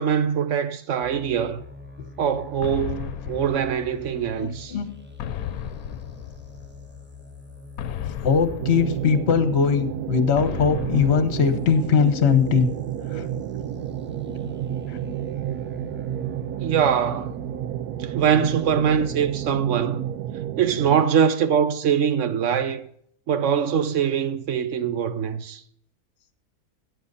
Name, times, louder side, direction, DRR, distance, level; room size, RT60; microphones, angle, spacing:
voice 1, 0.0-1.6 2.2-4.7 16.6-17.3 18.0-20.0 20.6-22.8 23.3-25.6, right 8 dB, 60° right, 1.0 m, -23 dB
sound 1, 1.0-19.6, left 3 dB, 10° right, 0.9 m, -44 dB
sound 2, 2.6-4.4 5.2-6.9 7.8-9.6 10.4-12.1, left 10 dB, 75° left, 1.1 m, -35 dB
voice 2, 4.4-4.9 8.2-12.7 13.1-13.2, left 6 dB, 50° left, 1.2 m, -20 dB
sound 3, 8.6-21.1, right 11 dB, 85° right, 1.1 m, -31 dB
14.0 x 8.8 x 4.0 m
omnidirectional pair, 1.6 m